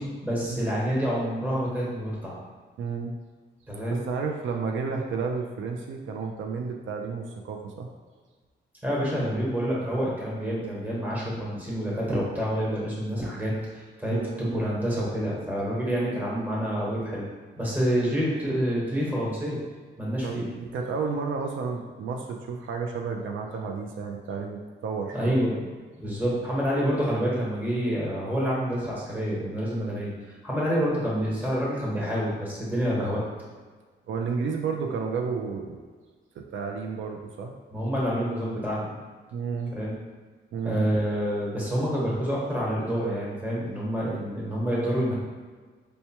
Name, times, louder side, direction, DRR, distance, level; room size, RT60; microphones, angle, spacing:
voice 1, 0.0-2.4 3.7-4.0 8.8-17.2 17.6-19.6 20.0-20.5 25.1-25.5 26.0-33.2 37.7-39.0 39.8-39.9 40.6-45.2, equal, 10° right, -6 dB, 1.0 m, -28 dB
voice 2, 2.8-3.1 3.9-7.9 10.9-11.1 14.1-14.5 20.2-25.5 29.8-30.0 34.1-35.8 36.4-37.5 39.3-39.8 40.5-40.8, right 5 dB, 85° right, 1 dB, 0.4 m, -32 dB
4.4 x 2.2 x 2.8 m, 1.5 s
wide cardioid pair, 140°, 19 cm